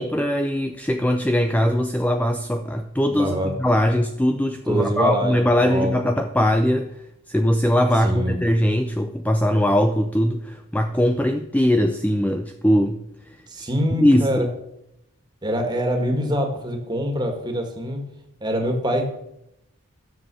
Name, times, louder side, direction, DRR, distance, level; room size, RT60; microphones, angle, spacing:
voice 1, 0.0-13.0 14.0-14.5, equal, 5° left, 7 dB, 0.4 m, -21 dB
voice 2, 3.1-3.5 4.7-5.9 8.0-8.4 13.5-14.5 15.4-18.0 18.4-19.1, equal, 20° right, 3 dB, 1.8 m, -24 dB
12.5 x 7.6 x 6.9 m, 0.83 s
head